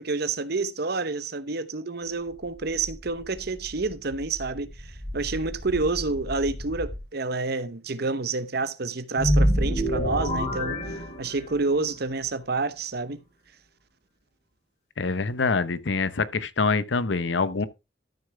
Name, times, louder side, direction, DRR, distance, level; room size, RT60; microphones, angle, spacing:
voice 1, 0.0-13.2, right 3 dB, 60° right, 0.9 m, -29 dB
sound 1, 2.1-7.0, left 1 dB, 20° right, 2.2 m, -39 dB
sound 2, 9.2-11.7, equal, 40° left, 3.5 m, -25 dB
voice 2, 15.0-17.7, left 4 dB, 80° left, 0.8 m, -25 dB
13.0 x 6.6 x 3.4 m
head